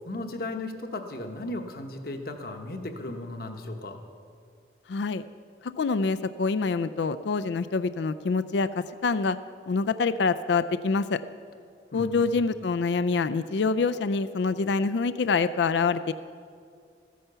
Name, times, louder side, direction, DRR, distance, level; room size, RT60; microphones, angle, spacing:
voice 1, 0.1-4.0 11.9-12.3, left 2 dB, 55° left, 5 dB, 1.1 m, -36 dB
voice 2, 4.9-5.2 5.8-9.4 9.7-11.2 11.9-16.1, left 4 dB, 80° left, 13 dB, 0.4 m, -26 dB
14.5 x 10.0 x 6.8 m, 2.2 s
head